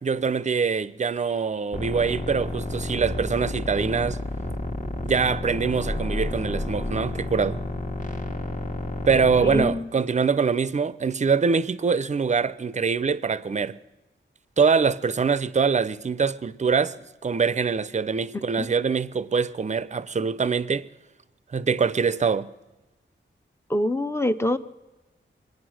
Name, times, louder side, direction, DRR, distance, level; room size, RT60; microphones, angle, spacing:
voice 1, 0.0-4.2 5.0-7.6 9.1-13.8 14.6-16.9 17.2-20.9 21.5-22.5, right 5 dB, 35° right, 0.5 m, -24 dB
sound 1, 1.7-9.6, left 1 dB, 40° left, 1.4 m, -31 dB
voice 2, 9.4-9.9 18.3-18.7 23.7-24.6, left 1 dB, 15° left, 0.6 m, -25 dB
24.0 x 9.3 x 6.3 m
wide cardioid pair, 110°, 20 cm